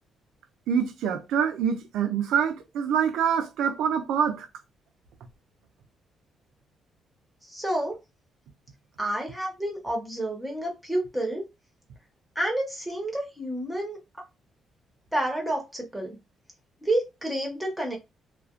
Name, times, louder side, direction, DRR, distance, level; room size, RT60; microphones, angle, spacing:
voice 1, 0.7-4.5, right 7 dB, 85° right, 0.5 m, -25 dB
voice 2, 7.4-7.9 9.0-11.4 12.3-14.0 15.1-16.2 16.8-18.0, right 1 dB, 5° right, 1.0 m, -29 dB
2.5 x 2.2 x 2.4 m
cardioid pair, 90°, 0 cm